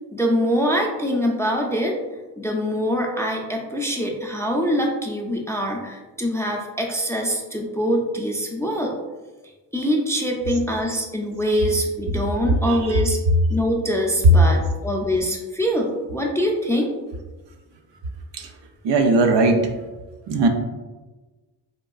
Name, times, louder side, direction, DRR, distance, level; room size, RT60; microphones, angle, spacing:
voice 1, 0.1-2.0 2.4-8.9 9.7-13.2 13.5-16.9, equal, 5° left, 0 dB, 0.4 m, -24 dB
voice 2, 12.6-13.0 14.2-14.3 18.3-18.5 18.8-19.7 20.3-20.5, right 2 dB, 65° right, 4 dB, 0.6 m, -18 dB
3.6 x 2.3 x 2.2 m, 1.2 s
supercardioid pair, 40°, 48 cm